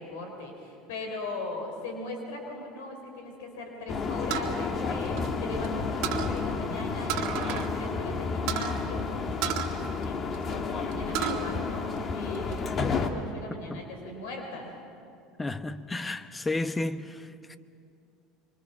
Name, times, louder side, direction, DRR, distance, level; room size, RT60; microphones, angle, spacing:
voice 1, 0.0-14.8, left 2 dB, 80° left, 4.1 m, -39 dB
sound 1, 3.9-13.1, left 4 dB, 40° left, 1.8 m, -31 dB
sound 2, 4.3-5.7 6.0-6.4 7.1-7.7 8.0-8.1 8.5-8.8 9.4-10.5 10.9-11.4 11.8-12.6, right 11 dB, 70° right, 1.8 m, -32 dB
voice 2, 15.4-17.6, left 2 dB, 15° left, 1.0 m, -32 dB
25.5 x 24.0 x 5.9 m
hypercardioid pair, 80°, 0 cm